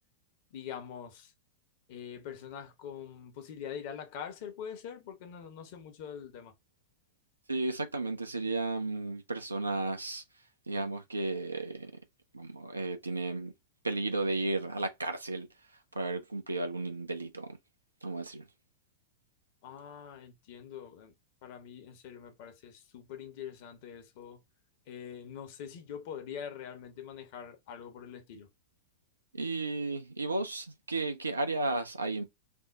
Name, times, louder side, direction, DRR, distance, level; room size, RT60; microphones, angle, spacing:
voice 1, 0.5-1.3 1.9-6.5 19.6-21.1 21.4-24.4 24.9-28.5, left 8 dB, 50° left, 0.9 m, -44 dB
voice 2, 7.5-10.2 10.7-11.9 12.3-13.5 13.8-15.5 15.9-17.6 18.0-18.5 29.3-32.2, right 2 dB, 80° right, 0.7 m, -33 dB
3.5 x 2.1 x 3.9 m
figure-of-eight pair, 90°, 0 cm